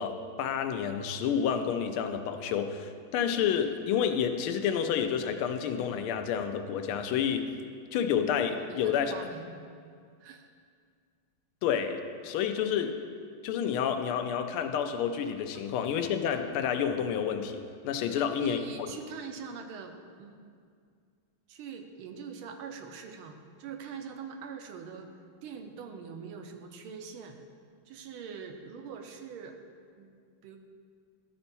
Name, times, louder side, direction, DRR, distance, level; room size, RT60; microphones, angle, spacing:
voice 1, 0.0-7.5 7.9-9.2 11.6-13.0 13.4-18.9, left 8 dB, 85° left, 7 dB, 1.5 m, -29 dB
voice 2, 8.6-9.6 10.2-10.5 12.6-12.7 18.1-19.9 20.2-20.3 21.5-25.1 25.4-27.4 27.9-29.6 30.0-30.1 30.4-30.6, right 6 dB, 90° right, 5 dB, 1.6 m, -43 dB
12.5 x 4.4 x 4.1 m, 2.2 s
omnidirectional pair, 2.3 m